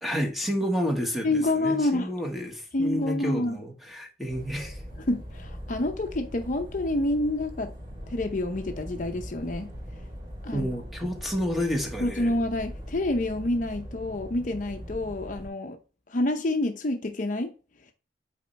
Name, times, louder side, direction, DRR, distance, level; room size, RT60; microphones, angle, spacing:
voice 1, 0.0-4.8 10.5-12.3, equal, ahead, 1.4 m, -30 dB
voice 2, 1.2-2.1 2.7-3.6 5.1-7.7 8.1-9.7 10.4-10.7 12.0-15.8 16.1-17.5, left 1 dB, 45° left, 0.7 m, -28 dB
sound 1, 4.3-15.5, equal, 30° right, 3.4 m, -41 dB
8.2 x 4.3 x 3.3 m
head